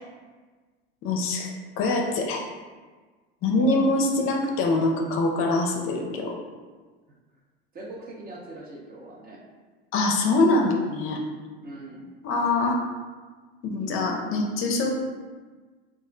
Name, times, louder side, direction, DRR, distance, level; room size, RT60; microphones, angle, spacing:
voice 1, 1.0-1.5 1.8-2.4 3.4-6.3 9.9-11.2 12.2-12.8 13.6-14.9, left 2 dB, 45° left, 1 dB, 0.5 m, -24 dB
voice 2, 3.5-3.9 7.7-9.4 11.6-12.1, right 2 dB, 30° right, -2 dB, 0.7 m, -40 dB
2.4 x 2.1 x 3.7 m, 1.4 s
hypercardioid pair, 85°, 29 cm